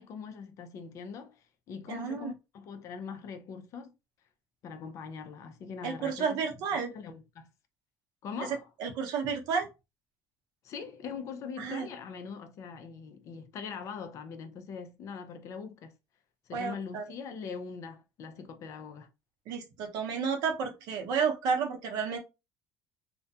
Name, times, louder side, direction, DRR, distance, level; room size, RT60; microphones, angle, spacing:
voice 1, 0.0-3.9 4.6-6.4 6.7-7.5 8.2-8.7 10.6-15.9 16.5-19.1, left 5 dB, 45° left, 0.4 m, -42 dB
voice 2, 1.9-2.3 5.8-6.9 8.5-9.7 11.6-11.9 16.5-17.0 19.5-22.2, right 6 dB, 65° right, 0.7 m, -31 dB
2.3 x 2.1 x 2.7 m
cardioid pair, 155°, 7 cm